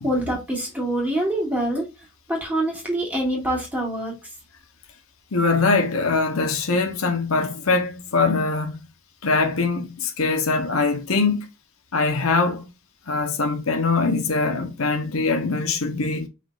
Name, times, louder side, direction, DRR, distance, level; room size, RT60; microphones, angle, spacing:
voice 1, 0.0-1.9 2.3-4.2, right 1 dB, 5° right, 2.1 m, -25 dB
voice 2, 5.3-8.8 9.2-11.5 11.9-12.7 13.1-16.3, left 3 dB, 70° left, 0.9 m, -22 dB
5.6 x 3.8 x 2.5 m
head